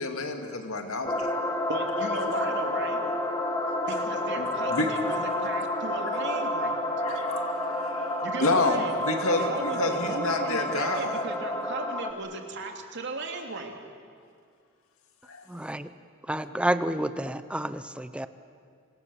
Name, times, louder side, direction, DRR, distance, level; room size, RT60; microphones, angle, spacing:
voice 1, 0.0-1.3 3.9-4.0 4.4-5.1 7.0-11.2 15.2-15.5, left 2 dB, 80° left, 4 dB, 2.4 m, -29 dB
sound 1, 1.0-12.1, left 1 dB, 15° left, 2.0 m, -30 dB
voice 2, 1.7-3.0 3.9-6.8 8.2-8.9 9.4-13.8, right 2 dB, 55° right, 3 dB, 2.9 m, -36 dB
voice 3, 15.5-15.9 16.3-18.3, right 1 dB, 5° right, 12 dB, 0.8 m, -29 dB
27.5 x 25.5 x 7.1 m, 2.2 s
head